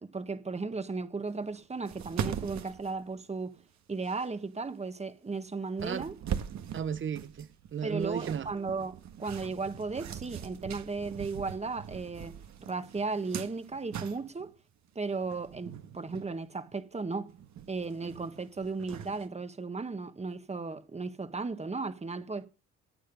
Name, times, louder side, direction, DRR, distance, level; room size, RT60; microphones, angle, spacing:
voice 1, 0.0-3.5 3.9-6.2 7.8-12.3 12.7-14.5 14.9-17.3 17.7-22.5, right 4 dB, 20° right, 1.5 m, -35 dB
sound 1, 1.5-1.6 1.9-3.6 4.0-4.3 5.3-5.4 5.8-14.5 15.2-16.3 16.7-16.8 17.1-19.3, right 9 dB, 65° right, 1.6 m, -41 dB
voice 2, 6.7-8.5, right 7 dB, 40° right, 0.9 m, -34 dB
18.0 x 9.1 x 5.5 m
cardioid pair, 90°, 30 cm